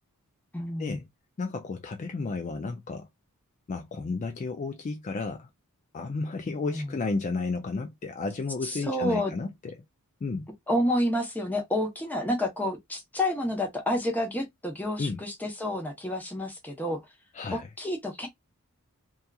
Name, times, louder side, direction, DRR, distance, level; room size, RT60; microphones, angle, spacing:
voice 1, 0.5-1.0 6.7-6.9 8.6-9.3 10.7-17.0 17.5-18.3, left 1 dB, 10° left, 0.7 m, -29 dB
voice 2, 1.4-3.1 3.7-5.5 5.9-9.8 10.2-10.5 15.0-15.2 17.3-17.7, left 3 dB, 35° left, 0.3 m, -32 dB
2.8 x 2.3 x 2.2 m
head